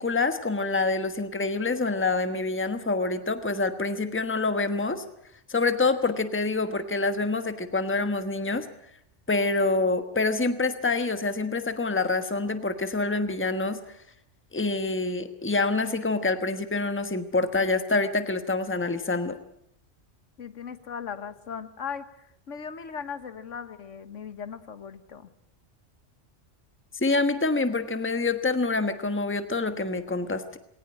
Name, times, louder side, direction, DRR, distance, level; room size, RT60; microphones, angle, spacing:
voice 1, 0.0-5.0 5.5-8.7 9.3-13.8 14.5-19.4 27.0-30.6, left 3 dB, 10° left, 9 dB, 1.2 m, -26 dB
voice 2, 20.4-25.3, left 7 dB, 85° left, 12 dB, 1.6 m, -38 dB
20.5 x 18.5 x 8.9 m, 0.74 s
omnidirectional pair, 1.2 m